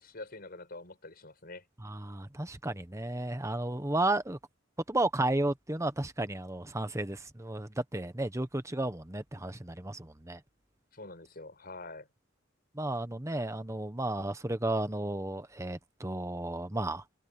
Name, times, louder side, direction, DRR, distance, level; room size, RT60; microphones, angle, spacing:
voice 1, 0.0-1.7 10.9-12.1, left 2 dB, 50° left, 6.0 m, -46 dB
voice 2, 1.8-4.4 4.9-10.4 12.7-17.0, right 2 dB, 15° right, 1.2 m, -33 dB
head